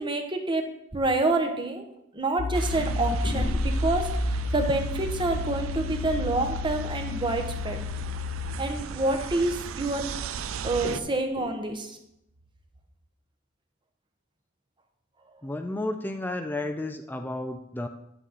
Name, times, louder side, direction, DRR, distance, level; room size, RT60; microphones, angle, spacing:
voice 1, 0.0-1.9 2.1-4.1 4.5-7.8 8.6-10.1 10.6-12.0, right 2 dB, 25° right, 4 dB, 1.0 m, -27 dB
sound 1, 2.3-2.4 2.7-6.7 7.0-7.1 7.4-7.5 7.8-8.1 8.5-8.6 8.8-11.8, left 1 dB, 45° left, 0.8 m, -38 dB
sound 2, 2.4-8.6, left 4 dB, 85° left, 0.6 m, -32 dB
sound 3, 2.5-11.0, right 6 dB, 75° right, 0.5 m, -35 dB
voice 2, 15.4-17.9, left 2 dB, 10° left, 6 dB, 0.4 m, -32 dB
11.0 x 6.1 x 4.1 m, 0.82 s
head